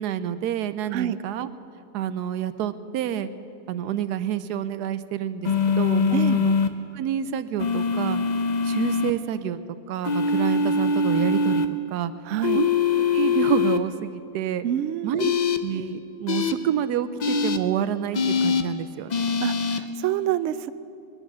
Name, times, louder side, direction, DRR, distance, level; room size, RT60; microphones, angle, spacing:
voice 1, 0.0-1.5 1.9-3.3 3.7-6.5 6.9-8.2 8.6-9.6 9.9-11.6 11.9-12.1 12.5-12.7 13.0-14.6 15.0-15.3 15.6-19.3, right 10 dB, 90° right, 13 dB, 1.2 m, -28 dB
sound 1, 5.4-6.7 7.6-9.1 10.0-11.7 12.4-13.8 15.2-15.6 16.3-16.5 17.2-17.6 18.1-18.6 19.1-19.8, left 5 dB, 55° left, 0.4 m, -23 dB
voice 2, 6.1-6.5 12.3-12.6 14.6-15.4 19.4-20.7, right 11 dB, 70° right, 13 dB, 0.7 m, -27 dB
20.5 x 11.0 x 6.2 m, 2.7 s
omnidirectional pair, 1.7 m